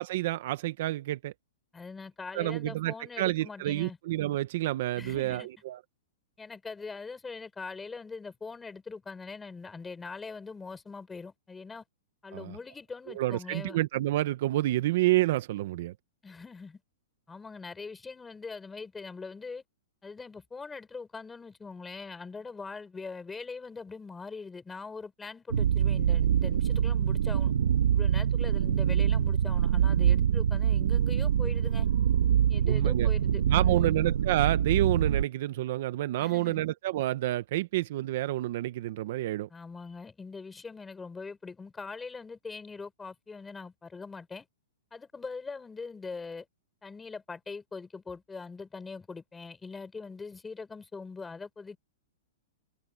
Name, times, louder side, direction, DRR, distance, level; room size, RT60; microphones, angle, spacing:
voice 1, 0.0-1.3 2.3-5.8 12.3-12.6 13.1-15.9 32.6-33.1 33.5-39.5, right 16 dB, 50° right, 0.7 m, -29 dB
voice 2, 1.7-4.0 5.0-5.5 6.4-11.8 12.2-13.8 16.2-16.8 17.3-19.6 20.0-27.5 27.9-31.9 32.5-34.0 36.2-36.6 39.5-44.5 44.9-46.5 46.8-51.8, left 4 dB, 10° left, 4.6 m, -42 dB
sound 1, 25.5-35.2, right 9 dB, 80° right, 1.9 m, -25 dB
hypercardioid pair, 165°, 0 cm